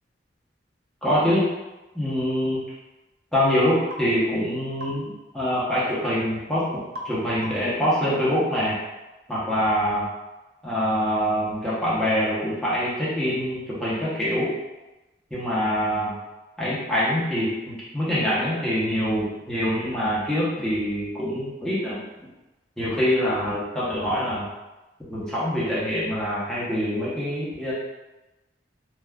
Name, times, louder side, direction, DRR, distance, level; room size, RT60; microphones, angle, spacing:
voice 1, 1.0-1.4 1.9-2.6 3.3-6.6 7.0-8.8 9.3-10.1 10.6-14.5 15.3-16.2 16.6-22.0 22.8-24.5 25.1-27.7, equal, 5° left, -10 dB, 0.8 m, -24 dB
sound 1, 3.9-4.1 4.8-5.0 6.9-7.2 7.4-7.8, left 1 dB, 50° right, 0.4 m, -36 dB
3.3 x 2.4 x 2.3 m, 1.1 s
head